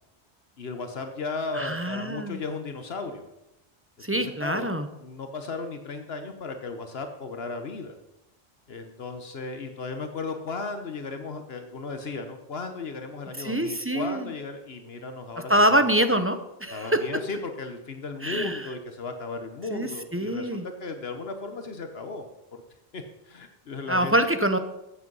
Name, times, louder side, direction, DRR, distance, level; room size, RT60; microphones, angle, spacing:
voice 1, 0.6-3.2 4.0-4.7 5.0-8.0 8.7-15.8 16.7-22.3 22.5-22.6 22.9-24.1, left 3 dB, 75° left, 7 dB, 1.3 m, -35 dB
voice 2, 1.5-2.4 4.0-4.9 13.4-14.3 15.5-17.1 18.2-18.7 19.7-20.7 23.9-24.6, right 1 dB, 15° right, 9 dB, 0.8 m, -25 dB
14.5 x 7.9 x 5.5 m, 0.92 s
omnidirectional pair, 1.1 m